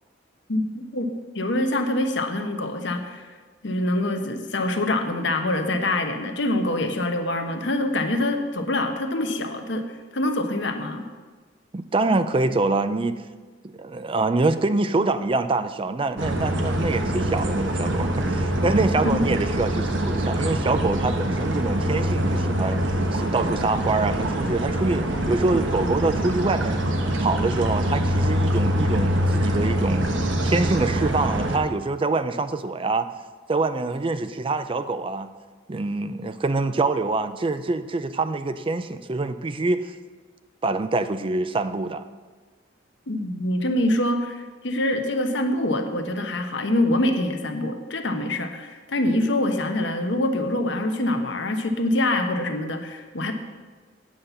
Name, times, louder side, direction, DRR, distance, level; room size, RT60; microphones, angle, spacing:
voice 1, 0.5-1.1 1.3-3.2 3.6-9.8 10.1-11.0 19.0-19.2 43.1-53.3, left 1 dB, 65° left, 5 dB, 1.0 m, -25 dB
voice 2, 11.7-13.1 13.6-22.8 23.1-26.8 27.2-30.1 30.4-33.1 33.5-35.3 35.7-39.9 40.6-42.1, right 3 dB, 30° right, 11 dB, 0.4 m, -25 dB
sound 1, 16.2-31.6, right 1 dB, 80° right, 1.1 m, -24 dB
8.7 x 5.7 x 8.0 m, 1.4 s
head